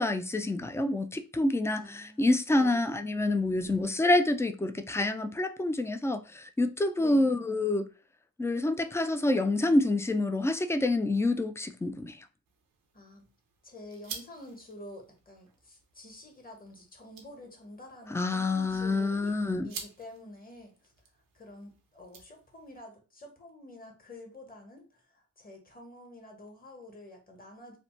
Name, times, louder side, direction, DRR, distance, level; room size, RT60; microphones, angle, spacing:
voice 1, 0.0-7.9 8.4-12.2 18.1-19.7, left 2 dB, 10° left, 0.3 m, -27 dB
voice 2, 1.7-2.3 2.6-2.8 7.0-7.3 12.9-13.3 13.6-19.4 19.6-20.8 21.3-27.8, left 1 dB, 25° left, 1.2 m, -48 dB
sound 1, 12.4-22.8, right 5 dB, 90° right, 0.7 m, -50 dB
2.9 x 2.0 x 3.1 m
supercardioid pair, 40°, 33 cm